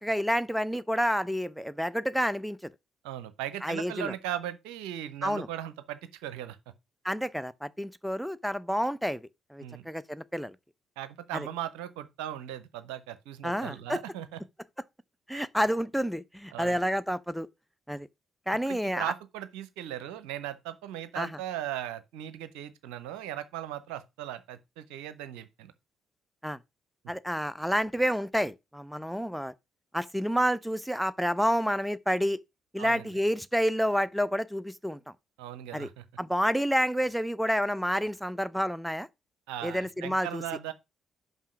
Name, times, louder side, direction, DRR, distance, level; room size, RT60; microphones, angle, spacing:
voice 1, 0.0-2.7 3.6-4.1 5.2-5.5 7.0-10.5 11.3-11.5 13.4-14.0 15.3-17.5 17.9-18.1 18.5-19.1 21.2-21.3 26.4-26.6 27.1-29.5 29.9-32.4 32.7-35.0 35.7-35.9 36.2-39.1 39.6-40.4, equal, ahead, 0.6 m, -29 dB
voice 2, 3.0-6.6 9.6-9.9 11.0-14.4 15.3-15.4 16.5-16.8 18.5-25.7 32.8-33.1 35.4-36.0 39.5-40.7, right 12 dB, 70° right, 0.7 m, -38 dB
5.6 x 5.6 x 5.9 m
figure-of-eight pair, 40°, 0 cm